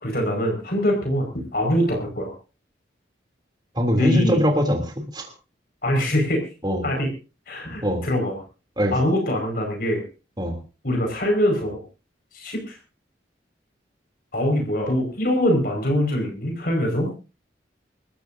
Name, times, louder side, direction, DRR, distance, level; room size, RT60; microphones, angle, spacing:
voice 1, 0.0-2.3 4.0-4.4 5.8-6.4 6.8-7.1 7.5-8.4 8.9-10.0 10.8-11.8 12.3-12.8 14.3-17.1, left 1 dB, 55° left, 2 dB, 5.2 m, -23 dB
voice 2, 3.7-5.3 6.6-6.8 7.8-8.0 8.8-8.9 10.4-10.6, equal, 25° right, 4 dB, 2.9 m, -22 dB
28.0 x 14.0 x 2.7 m, 0.33 s
head